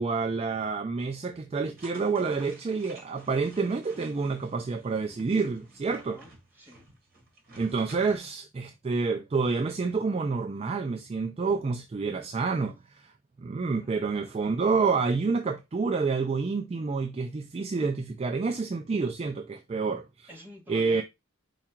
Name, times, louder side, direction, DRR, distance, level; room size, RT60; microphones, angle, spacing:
voice 1, 0.0-6.2 7.6-13.1 13.4-20.3 20.7-21.0, right 4 dB, 30° right, 0.3 m, -28 dB
sound 1, 1.8-8.2, right 2 dB, 45° right, 1.4 m, -53 dB
voice 2, 6.0-6.8 13.8-14.1 20.3-21.0, left 1 dB, 10° right, 1.3 m, -48 dB
4.7 x 2.3 x 4.4 m
head